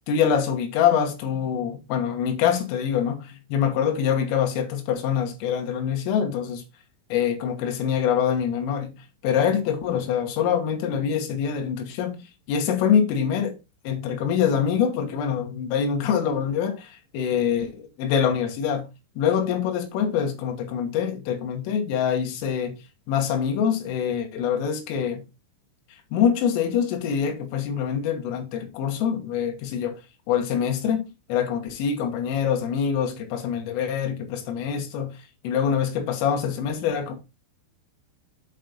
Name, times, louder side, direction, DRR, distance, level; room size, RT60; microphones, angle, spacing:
voice 1, 0.1-6.6 7.1-8.9 9.2-12.2 12.5-13.6 13.9-18.9 19.2-22.7 23.1-25.2 26.1-30.0 30.3-35.2 35.4-37.1, left 8 dB, 90° left, 3.9 m, -25 dB
8.3 x 4.6 x 3.9 m
omnidirectional pair, 5.6 m